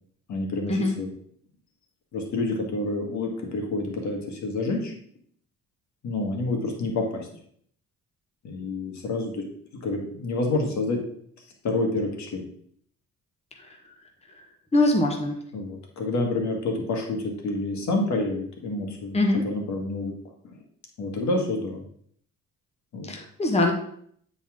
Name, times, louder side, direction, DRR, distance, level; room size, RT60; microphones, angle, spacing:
voice 1, 0.3-1.1 2.1-4.9 6.0-7.3 8.4-9.4 9.8-11.0 11.6-12.4 15.5-19.2 19.4-20.1 21.0-21.8 22.9-23.1, left 2 dB, 65° left, 2 dB, 1.7 m, -28 dB
voice 2, 14.7-15.4 19.1-19.4 23.0-23.7, left 2 dB, 20° left, 2 dB, 1.2 m, -23 dB
9.1 x 4.2 x 3.6 m, 0.63 s
cardioid pair, 90°, 30 cm